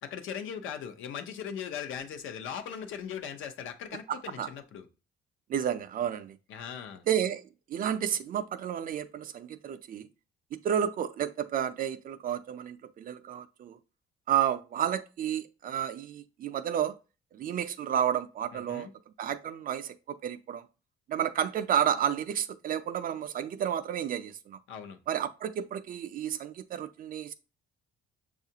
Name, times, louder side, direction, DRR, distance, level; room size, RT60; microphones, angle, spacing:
voice 1, 0.0-4.9 6.5-7.0 18.5-18.9 24.7-25.0, left 8 dB, 75° left, 0.7 m, -39 dB
voice 2, 4.1-4.5 5.5-6.4 7.1-10.1 10.5-13.8 14.3-17.0 17.3-18.9 19.2-20.6 21.1-24.6 25.1-27.3, right 9 dB, 45° right, 0.4 m, -31 dB
6.4 x 2.4 x 2.8 m
cardioid pair, 130°, 21 cm